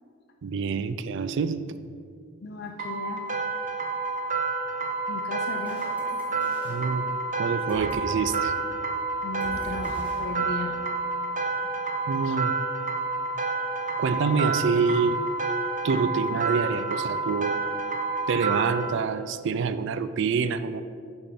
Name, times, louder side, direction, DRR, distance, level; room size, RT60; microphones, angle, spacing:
voice 1, 0.4-1.7 6.6-7.1 7.3-8.5 12.1-12.5 14.0-15.2 15.8-17.6 18.3-20.8, right 5 dB, 65° right, 12 dB, 0.3 m, -26 dB
voice 2, 2.4-3.3 5.1-5.8 9.2-10.8 14.0-14.2, left 3 dB, 55° left, 3 dB, 0.5 m, -36 dB
sound 1, 2.8-18.9, right 3 dB, 40° right, 0.7 m, -29 dB
sound 2, 5.4-8.3 8.5-8.8 9.4-10.9, equal, 5° right, 1.3 m, -44 dB
8.6 x 3.5 x 5.8 m, 2.2 s
head